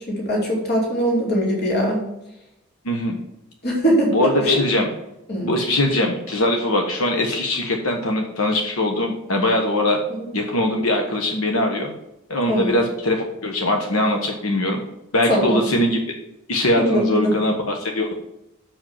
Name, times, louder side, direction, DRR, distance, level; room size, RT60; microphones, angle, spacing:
voice 1, 0.1-2.0 3.6-4.6 5.3-5.5 10.2-10.3 12.5-12.8 15.3-15.6 16.8-17.3, equal, 50° left, -2 dB, 2.6 m, -21 dB
voice 2, 2.8-3.2 4.1-4.9 5.4-10.0 10.3-11.9 12.3-14.8 15.1-16.0 16.5-18.1, left 1 dB, 80° left, 2 dB, 1.2 m, -21 dB
7.2 x 5.1 x 7.2 m, 0.88 s
head